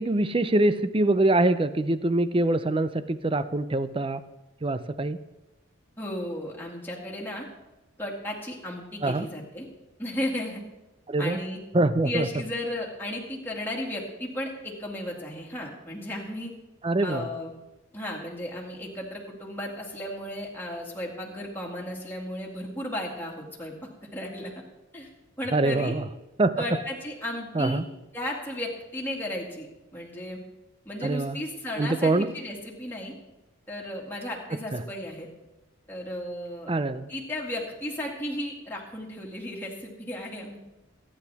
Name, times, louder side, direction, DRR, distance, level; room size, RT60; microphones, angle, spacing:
voice 1, 0.0-4.2 4.6-5.2 9.0-9.3 11.1-11.4 11.7-12.3 16.8-17.3 25.5-26.1 26.4-26.6 27.5-27.8 31.0-31.4 31.8-32.3 34.7-34.8 36.7-37.1, right 2 dB, 25° right, 13 dB, 0.5 m, -24 dB
voice 2, 6.0-7.5 8.0-9.7 10.0-10.6 11.2-11.6 12.0-16.5 17.0-17.5 17.9-24.5 24.9-25.1 25.4-25.9 26.6-27.8 28.1-29.7 29.9-30.4 30.9-33.1 33.7-35.3 35.9-36.7 37.1-40.6, left 1 dB, 10° left, -3 dB, 2.2 m, -34 dB
22.5 x 9.9 x 3.5 m, 1.0 s
head